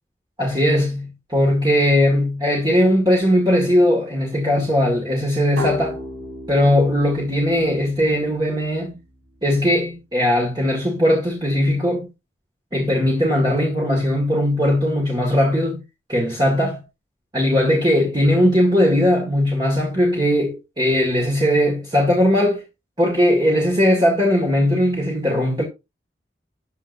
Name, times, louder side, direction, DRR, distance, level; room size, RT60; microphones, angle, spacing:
voice 1, 0.4-6.0 6.5-8.9 9.4-12.1 12.7-15.8 16.1-16.8 17.3-22.6 23.0-25.6, equal, 25° right, 2.1 m, -19 dB
sound 1, 5.6-9.0, left 2 dB, 70° right, 5.7 m, -34 dB
13.0 x 6.8 x 2.7 m
head